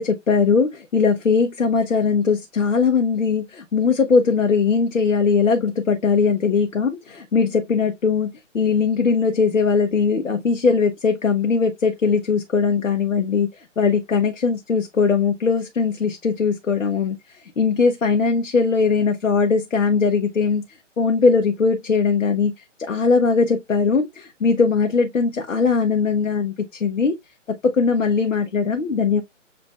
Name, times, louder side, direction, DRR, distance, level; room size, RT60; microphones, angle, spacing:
voice 1, 0.0-20.6 21.0-27.1 27.7-29.2, left 5 dB, 90° left, 0.9 m, -20 dB
7.5 x 2.6 x 2.3 m
figure-of-eight pair, 150°, 38 cm